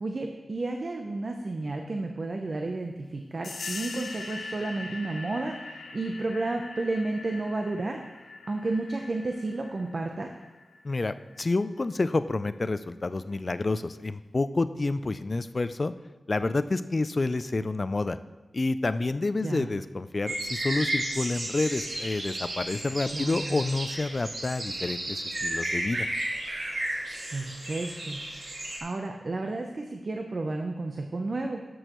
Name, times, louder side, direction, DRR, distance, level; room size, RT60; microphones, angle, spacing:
voice 1, 0.0-8.0 8.5-10.3 19.4-19.7 23.1-23.6 27.3-28.2 28.8-31.6, right 2 dB, 55° right, 3 dB, 0.6 m, -32 dB
sound 1, 3.4-11.7, left 3 dB, 90° left, 0.7 m, -42 dB
voice 2, 10.8-15.9 16.3-18.2 18.5-26.1, left 3 dB, 45° left, 13 dB, 0.3 m, -29 dB
sound 2, 20.3-28.8, right 1 dB, 75° right, 1.7 m, -33 dB
13.0 x 6.3 x 3.0 m, 1.2 s
wide cardioid pair, 65°, 0 cm